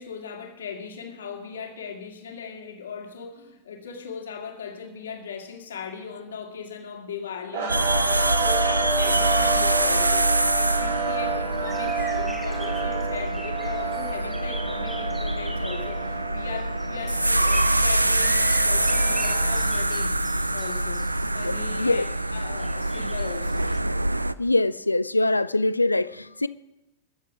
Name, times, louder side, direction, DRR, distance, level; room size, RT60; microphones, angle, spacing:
voice 1, 0.0-10.3 10.6-20.1 20.5-21.0 21.3-22.0 22.3-23.7, left 6 dB, 65° left, 2.1 m, -38 dB
sound 1, 7.5-19.9, right 4 dB, 55° right, 1.9 m, -30 dB
sound 2, 7.7-24.3, right 1 dB, 85° right, 0.3 m, -25 dB
sound 3, 11.5-23.8, equal, 5° right, 2.9 m, -43 dB
voice 2, 21.4-22.1 24.4-26.5, left 2 dB, 85° left, 0.4 m, -23 dB
22.5 x 7.5 x 5.0 m
figure-of-eight pair, 90°, 0 cm